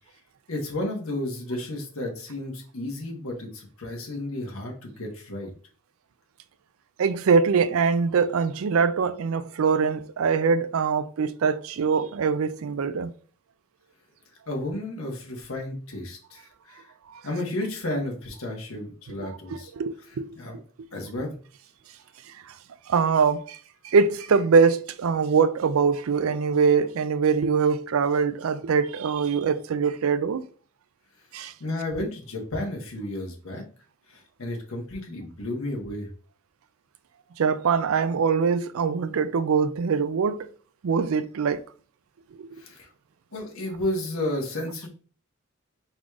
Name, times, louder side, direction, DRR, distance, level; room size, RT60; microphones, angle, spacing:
voice 1, 0.5-5.5 14.5-16.9 17.2-19.7 20.1-20.6 20.9-21.3 31.4-33.6 34.1-36.1 42.5-42.9 43.3-44.9, left 1 dB, 85° left, 1.4 m, -32 dB
voice 2, 7.0-13.1 17.1-17.2 19.8-20.4 22.5-22.6 22.9-23.6 23.8-30.4 31.3-31.5 37.4-40.5 40.8-41.6 42.3-42.5, right 5 dB, 80° right, 0.4 m, -23 dB
4.7 x 4.0 x 2.4 m
head